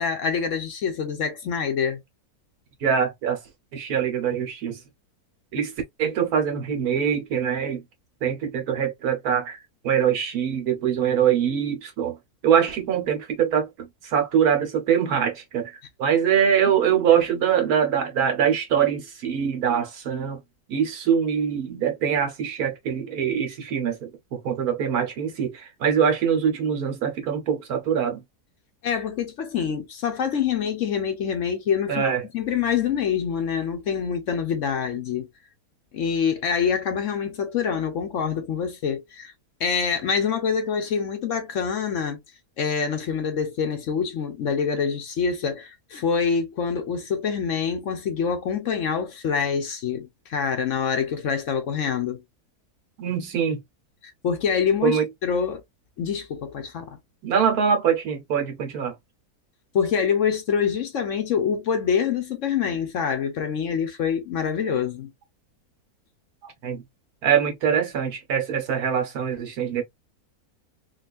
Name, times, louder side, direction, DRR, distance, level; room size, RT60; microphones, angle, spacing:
voice 1, 0.0-2.0 28.8-35.3 35.9-39.3 39.6-42.2 42.6-52.2 54.0-55.6 56.0-57.0 59.7-65.1, left 7 dB, 60° left, 0.9 m, -26 dB
voice 2, 2.8-3.4 3.7-4.8 5.5-5.7 6.0-7.8 8.2-9.6 9.8-12.2 12.4-15.7 16.0-20.4 20.7-28.2 31.9-32.2 53.0-53.6 54.8-55.1 57.2-58.9 66.4-66.8 67.2-69.8, right 8 dB, 75° right, 1.5 m, -23 dB
3.8 x 2.4 x 2.4 m
omnidirectional pair, 1.6 m